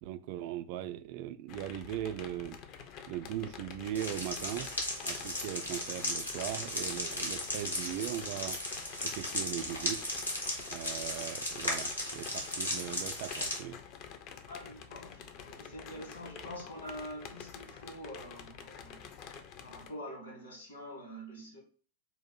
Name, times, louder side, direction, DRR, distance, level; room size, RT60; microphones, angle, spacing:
voice 1, 0.0-2.6 3.1-4.7 5.0-8.6 9.0-10.0 10.7-13.8, right 12 dB, 45° right, 0.3 m, -39 dB
sound 1, 1.5-19.9, left 7 dB, 40° left, 0.5 m, -48 dB
sound 2, 3.9-13.6, left 1 dB, 85° left, 1.2 m, -36 dB
voice 2, 14.5-21.6, equal, 70° left, 1.6 m, -46 dB
4.0 x 2.4 x 4.2 m
figure-of-eight pair, 90°, 0 cm